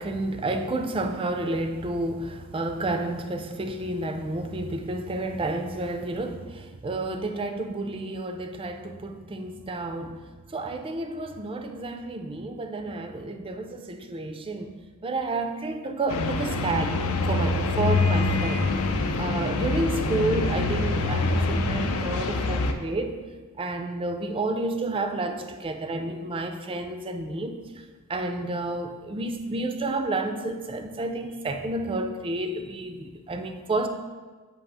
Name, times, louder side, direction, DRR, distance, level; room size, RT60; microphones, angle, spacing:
voice 1, 0.0-14.7 15.0-18.7 19.2-23.2 23.6-33.9, right 2 dB, 25° right, 6 dB, 0.4 m, -30 dB
sound 1, 16.1-22.7, left 3 dB, 70° left, 0.5 m, -25 dB
7.4 x 2.8 x 4.7 m, 1.4 s
head